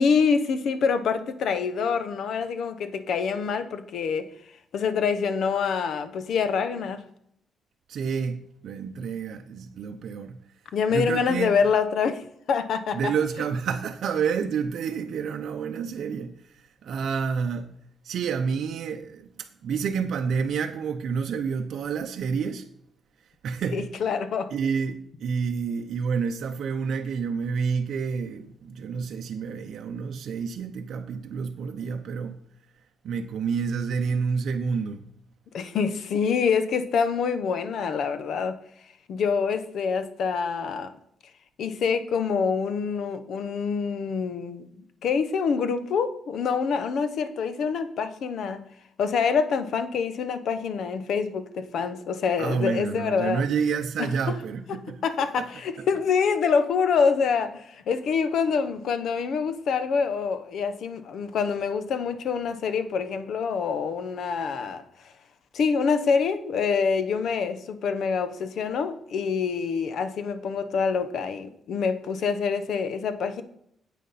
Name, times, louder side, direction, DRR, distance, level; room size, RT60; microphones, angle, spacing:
voice 1, 0.0-4.3 4.7-7.0 10.7-13.1 23.7-24.5 35.5-38.6 39.1-40.9 41.6-48.7 49.0-53.4 54.0-54.4 54.7-65.1 65.5-73.4, left 6 dB, 70° left, 0.9 m, -26 dB
voice 2, 7.9-10.4 10.9-11.5 12.9-17.7 18.0-22.7 23.4-23.9 24.5-32.4 33.0-35.0 52.4-55.0 55.4-55.5 55.8-55.9, right 6 dB, 70° right, 0.7 m, -29 dB
9.4 x 8.4 x 4.1 m
cardioid pair, 125°, 0 cm